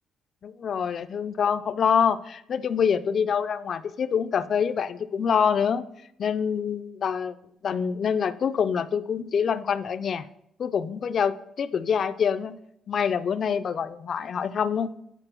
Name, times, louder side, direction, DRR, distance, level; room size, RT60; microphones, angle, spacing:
voice 1, 0.4-5.8 6.2-7.3 7.6-10.2 10.6-12.6 12.9-14.9, left 7 dB, 45° left, 12 dB, 0.3 m, -26 dB
8.8 x 4.4 x 4.4 m, 0.75 s
cardioid pair, 150°, 0 cm